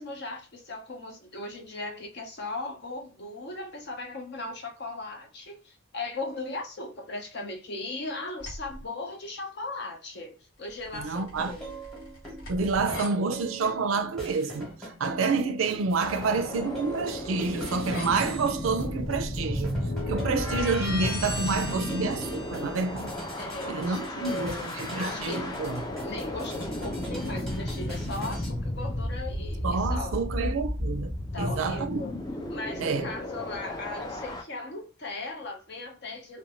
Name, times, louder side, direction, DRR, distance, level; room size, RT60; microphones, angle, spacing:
voice 1, 0.0-11.8 23.4-25.5 26.0-30.2 31.3-32.1 32.5-36.4, left 2 dB, 55° left, 0.7 m, -38 dB
sound 1, 8.4-8.8 10.7-13.1 16.6-23.0, left 1 dB, 70° left, 1.2 m, -38 dB
voice 2, 10.9-11.5 12.5-19.8 20.1-23.1 23.7-25.8 29.6-31.1 31.4-32.0 32.8-33.1, right 4 dB, 75° right, 0.4 m, -28 dB
sound 2, 11.4-28.5, right 1 dB, ahead, 1.0 m, -42 dB
sound 3, 16.0-34.4, left 1 dB, 20° left, 0.4 m, -34 dB
2.5 x 2.2 x 2.9 m
head